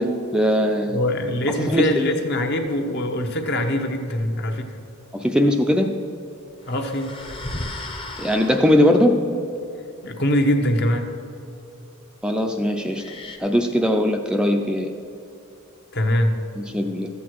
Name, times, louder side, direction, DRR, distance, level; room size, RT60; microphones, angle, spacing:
voice 1, 0.0-1.0 1.7-2.0 5.1-5.9 8.2-9.2 12.2-13.0 13.4-14.9 16.6-17.1, equal, 5° right, 4 dB, 0.4 m, -20 dB
voice 2, 0.9-4.8 6.7-7.1 10.0-11.1 15.9-16.4, left 1 dB, 50° left, 5 dB, 1.0 m, -23 dB
sound 1, 6.6-9.0 12.9-13.4, left 2 dB, 25° left, 0.8 m, -35 dB
13.0 x 8.2 x 4.6 m, 2.7 s
head